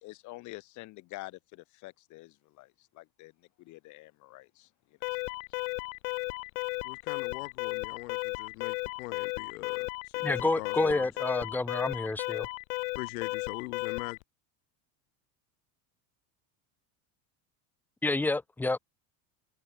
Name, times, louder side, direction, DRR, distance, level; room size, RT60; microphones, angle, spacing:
voice 1, 0.0-4.7 5.0-5.1 6.2-6.3, left 20 dB, 45° left, 4.3 m, -47 dB
Alarm, 5.0-14.2, left 26 dB, 75° left, 1.2 m, -35 dB
voice 2, 6.8-11.1 13.0-14.2, left 21 dB, 90° left, 4.2 m, -42 dB
voice 3, 10.2-12.5 18.0-18.8, left 2 dB, 5° left, 1.6 m, -29 dB
cardioid pair, 170°, 41 cm